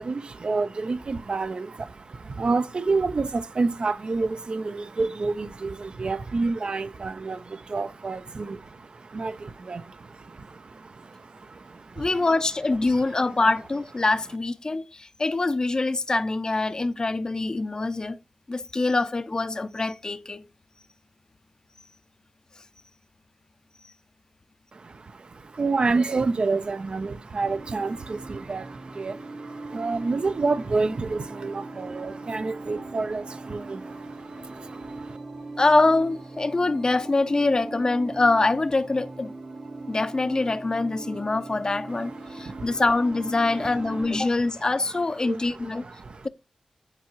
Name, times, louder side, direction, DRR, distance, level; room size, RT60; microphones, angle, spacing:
voice 1, 0.0-12.1 12.9-13.0 24.7-35.2 42.3-42.7 45.2-46.3, right 3 dB, 55° right, 0.5 m, -29 dB
voice 2, 12.0-18.2 18.5-20.4 35.6-39.3 39.9-45.8, left 3 dB, 35° left, 0.5 m, -24 dB
sound 1, 27.4-44.2, right 2 dB, 85° right, 2.1 m, -40 dB
8.8 x 4.6 x 2.9 m
cardioid pair, 60°, 2 cm